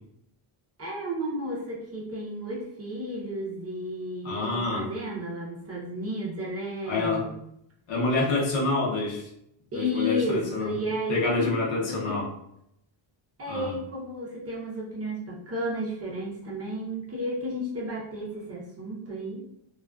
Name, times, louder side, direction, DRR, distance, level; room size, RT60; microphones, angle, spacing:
voice 1, 0.8-7.3 9.7-11.6 11.9-12.2 13.4-19.4, equal, 30° right, -4 dB, 0.6 m, -32 dB
voice 2, 4.2-4.9 6.9-7.3 7.9-9.3 9.7-10.7 11.1-12.3 13.5-13.7, left 3 dB, 65° left, -2 dB, 0.8 m, -27 dB
2.4 x 2.3 x 2.2 m, 0.76 s
cardioid pair, 145°, 48 cm